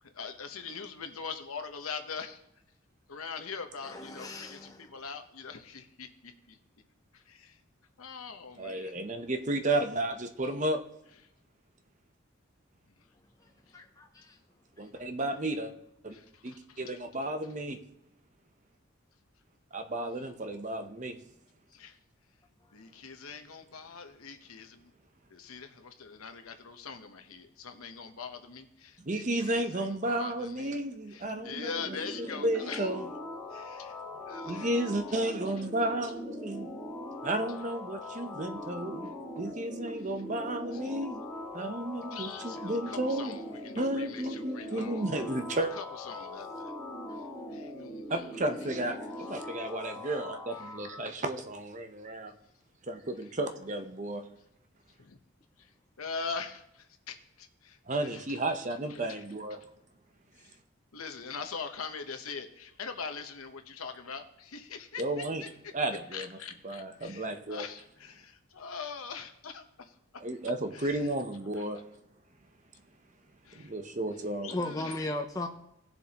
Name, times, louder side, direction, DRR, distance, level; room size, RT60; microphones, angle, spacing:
voice 1, 0.0-2.4 3.1-6.6 7.1-7.6 8.0-9.0 13.7-13.8 16.1-17.0 21.7-22.0 22.7-24.7 25.3-32.9 33.5-34.8 40.0-40.1 40.7-40.9 42.1-45.0 45.5-46.7 47.1-48.3 48.5-48.8 50.6-50.7 55.0-55.2 55.6-55.7 56.0-58.4 58.9-59.2 59.5-59.6 60.3-60.6 60.9-65.5 66.1-70.0 70.7-71.1 71.5-71.7 73.4-73.7 74.4-75.1, left 5 dB, 85° left, 0.9 m, -43 dB
voice 2, 3.8-4.9 13.7-14.4 47.1-47.2 74.5-75.5, left 2 dB, 15° left, 0.6 m, -36 dB
voice 3, 8.6-10.8 14.8-15.7 16.0-16.2 16.4-17.8 19.7-21.2 29.0-33.0 34.4-36.7 37.2-41.2 41.5-43.3 43.8-45.7 48.1-52.3 52.9-54.3 57.9-59.6 65.0-65.4 65.7-66.3 66.6-67.6 70.2-71.8 73.5-74.5, right 1 dB, 35° right, 0.7 m, -33 dB
sound 1, 31.2-51.1, left 1 dB, ahead, 1.7 m, -41 dB
17.5 x 7.0 x 2.9 m
head